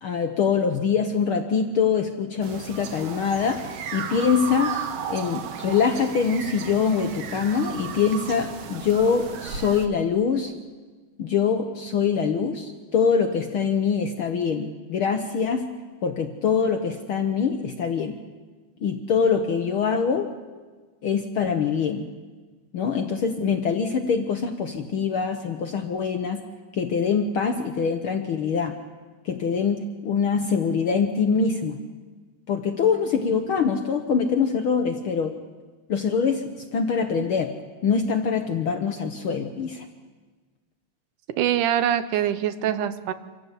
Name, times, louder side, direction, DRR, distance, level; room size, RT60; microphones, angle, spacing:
voice 1, 0.0-3.6 3.9-4.7 5.1-10.5 11.2-15.7 16.0-18.2 18.8-20.3 21.0-22.1 22.7-26.4 26.7-28.7 29.2-31.8 32.5-35.3 35.9-36.4 36.7-37.5 37.8-39.8, left 6 dB, 65° left, 6 dB, 1.4 m, -24 dB
sound 1, 2.4-9.9, right 7 dB, 60° right, 2.1 m, -34 dB
voice 2, 41.4-43.1, right 10 dB, 80° right, 12 dB, 2.4 m, -24 dB
26.0 x 15.0 x 8.2 m, 1.4 s
omnidirectional pair, 3.5 m